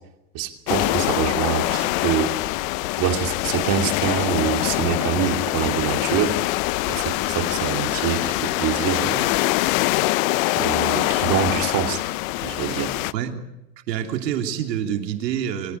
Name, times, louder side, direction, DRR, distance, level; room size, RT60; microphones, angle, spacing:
voice 1, 0.3-2.3 3.0-6.4 6.9-9.4 10.6-12.0 12.4-12.9, right 10 dB, 40° right, 4 dB, 2.7 m, -25 dB
sound 1, 0.7-13.1, left 19 dB, 55° left, 0.8 m, -24 dB
voice 2, 13.1-13.4 13.9-15.8, right 9 dB, 85° right, 4 dB, 3.2 m, -26 dB
24.5 x 16.0 x 8.2 m, 0.89 s
supercardioid pair, 140°, 48 cm